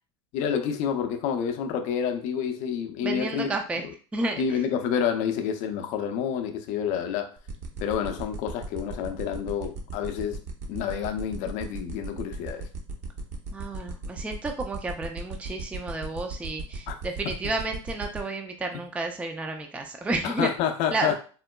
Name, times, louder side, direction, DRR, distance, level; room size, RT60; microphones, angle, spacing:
voice 1, 0.3-3.5 4.4-7.3 7.8-10.4 10.7-12.7 16.9-17.0 20.2-21.2, left 8 dB, 50° left, 0.4 m, -28 dB
voice 2, 3.0-3.8 4.1-4.6 13.5-20.5 20.9-21.2, right 2 dB, 10° right, 0.3 m, -31 dB
sound 1, 7.4-18.2, right 4 dB, 50° right, 0.7 m, -36 dB
3.7 x 2.1 x 2.2 m
hypercardioid pair, 90°, 16 cm